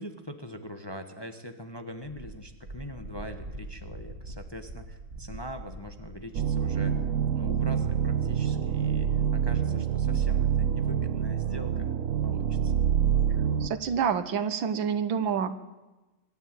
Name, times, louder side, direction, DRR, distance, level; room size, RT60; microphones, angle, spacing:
voice 1, 0.0-7.0 7.3-11.9 12.2-12.7, equal, 15° left, 6 dB, 1.2 m, -42 dB
Wind, 2.0-7.3, right 2 dB, 30° right, 2.3 m, -43 dB
sound 1, 6.3-13.7, right 8 dB, 50° right, 1.0 m, -26 dB
voice 2, 13.6-15.5, right 7 dB, 80° right, 12 dB, 1.9 m, -28 dB
24.0 x 12.5 x 9.2 m, 1.1 s
omnidirectional pair, 2.1 m